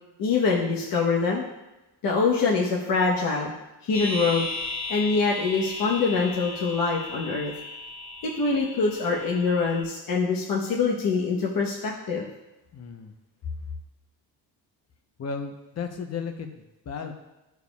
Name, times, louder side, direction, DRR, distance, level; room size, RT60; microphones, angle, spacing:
voice 1, 0.2-1.4 2.0-3.5 3.8-4.5 4.9-7.5 8.2-12.2, left 4 dB, 60° left, -3 dB, 1.1 m, -24 dB
sound 1, 3.9-9.8, left 3 dB, 75° left, 2.4 m, -36 dB
voice 2, 12.7-13.1 15.2-16.5 16.8-17.1, left 5 dB, 40° left, 5 dB, 0.8 m, -34 dB
12.5 x 4.7 x 2.3 m, 1.0 s
cardioid pair, 125°, 40 cm